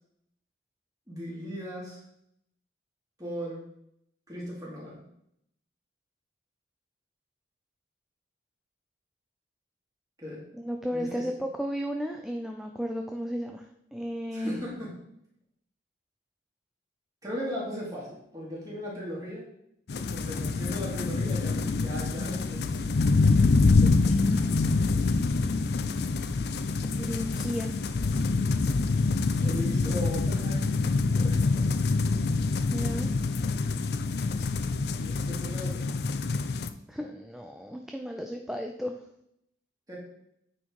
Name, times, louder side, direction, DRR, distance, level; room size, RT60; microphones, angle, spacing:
voice 1, 1.1-2.0 3.2-3.6 4.3-5.0 10.2-10.4 10.9-11.2 14.3-14.9 17.2-19.4 19.9-22.9 29.4-31.7 35.0-35.9 39.9-40.0, equal, 20° right, -5 dB, 2.7 m, -37 dB
voice 2, 10.5-13.6 13.9-14.6 23.5-24.8 27.0-27.8 32.7-33.2 36.9-39.0, equal, ahead, 3 dB, 0.4 m, -34 dB
sound 1, 19.9-36.7, left 3 dB, 60° left, 0.5 m, -26 dB
8.7 x 4.5 x 4.7 m, 0.76 s
head